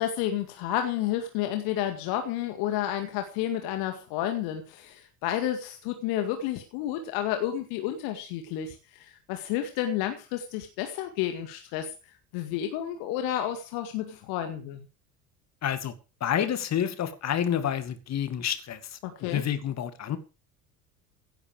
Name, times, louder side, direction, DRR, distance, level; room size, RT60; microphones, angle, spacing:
voice 1, 0.0-11.9 12.3-14.9 19.0-19.4, left 11 dB, 55° left, 2.1 m, -31 dB
voice 2, 15.6-15.9 16.2-20.2, left 9 dB, 35° left, 2.3 m, -29 dB
16.5 x 10.0 x 4.8 m
figure-of-eight pair, 65°, 44 cm